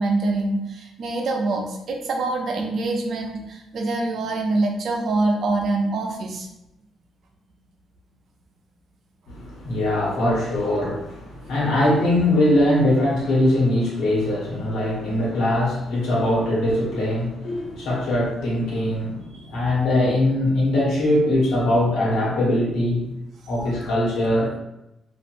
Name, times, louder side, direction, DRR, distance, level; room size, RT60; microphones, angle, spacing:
voice 1, 0.0-6.5, right 2 dB, 60° right, 1 dB, 0.6 m, -25 dB
voice 2, 9.3-23.2 23.5-24.6, left 1 dB, 80° left, -5 dB, 1.3 m, -21 dB
3.0 x 2.5 x 2.6 m, 0.88 s
cardioid pair, 90°, 0 cm